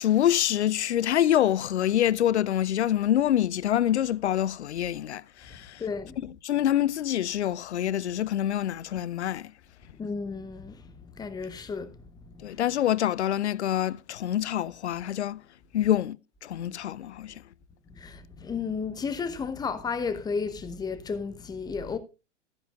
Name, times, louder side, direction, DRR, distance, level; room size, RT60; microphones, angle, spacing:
voice 1, 0.0-5.8 6.2-9.5 12.4-15.4 15.7-17.4, left 11 dB, 65° left, 0.6 m, -26 dB
voice 2, 5.8-6.2 10.0-10.8 11.2-12.0 12.3-12.4 17.9-22.0, left 5 dB, 10° left, 0.9 m, -33 dB
13.5 x 10.0 x 2.4 m
figure-of-eight pair, 105°, 37 cm